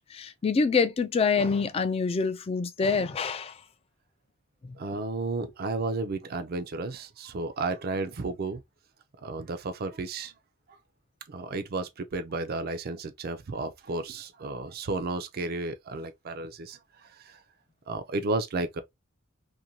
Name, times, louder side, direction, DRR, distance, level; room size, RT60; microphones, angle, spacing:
voice 1, 0.1-3.6 4.6-4.8, left 5 dB, 30° left, 0.3 m, -26 dB
voice 2, 4.8-8.6 9.2-10.3 11.3-17.4 17.9-18.8, right 3 dB, 45° right, 0.5 m, -33 dB
2.6 x 2.2 x 2.7 m
head